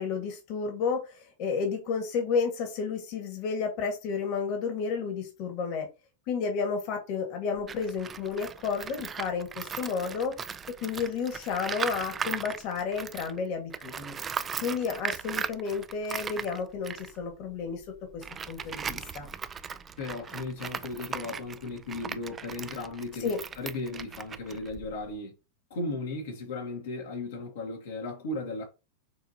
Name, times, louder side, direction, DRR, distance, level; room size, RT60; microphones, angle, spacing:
voice 1, 0.0-5.9 6.3-10.4 10.8-14.2 14.6-19.3 23.2-23.4, left 5 dB, 50° left, 1.7 m, -31 dB
Tools, 7.6-13.4 13.7-25.2, right 6 dB, 25° right, 0.4 m, -38 dB
voice 2, 20.0-25.3 25.7-28.7, left 2 dB, 75° left, 1.5 m, -36 dB
6.3 x 2.7 x 2.8 m
hypercardioid pair, 105°, 0 cm